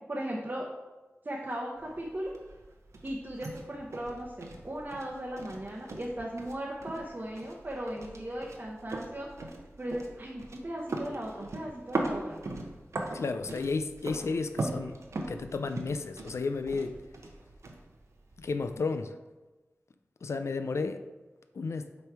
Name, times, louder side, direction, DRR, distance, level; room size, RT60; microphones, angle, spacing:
voice 1, 0.1-0.7 1.2-2.3 3.0-9.3 9.8-12.4, right 1 dB, 40° right, -3 dB, 0.8 m, -37 dB
sound 1, 1.8-18.8, right 2 dB, 85° right, 0.8 m, -40 dB
voice 2, 13.1-15.0 15.3-17.0 18.4-19.2 20.2-21.0 21.5-21.9, left 4 dB, 75° left, 8 dB, 0.4 m, -32 dB
7.9 x 3.1 x 4.6 m, 1.2 s
wide cardioid pair, 70°, 5 cm